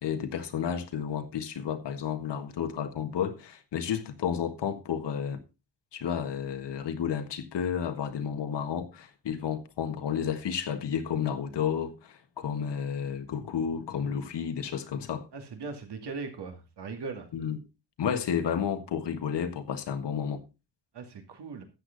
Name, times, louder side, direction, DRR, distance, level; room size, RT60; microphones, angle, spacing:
voice 1, 0.0-5.4 5.9-15.3 17.3-17.6 18.0-20.4, left 8 dB, 75° left, 1.6 m, -31 dB
voice 2, 15.3-17.3 20.9-21.6, right 4 dB, 65° right, 2.6 m, -39 dB
13.5 x 8.4 x 4.0 m
wide cardioid pair, 175°, 43 cm